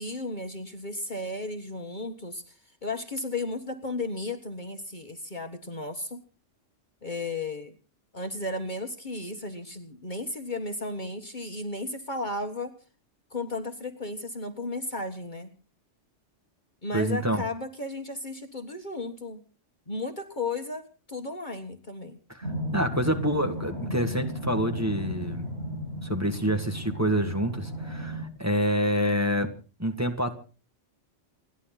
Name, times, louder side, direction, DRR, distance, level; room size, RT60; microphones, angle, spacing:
voice 1, 0.0-6.2 7.0-7.8 8.1-12.7 13.3-15.5 16.8-19.4 19.9-22.2, left 2 dB, 40° left, 6 dB, 1.6 m, -34 dB
voice 2, 16.9-17.4 22.3-22.5 22.7-25.5 26.0-29.5 29.8-30.4, equal, 15° right, 4 dB, 2.1 m, -27 dB
sound 1, 22.4-28.2, equal, 55° right, 7.6 m, -34 dB
29.0 x 11.5 x 4.0 m, 0.37 s
omnidirectional pair, 1.3 m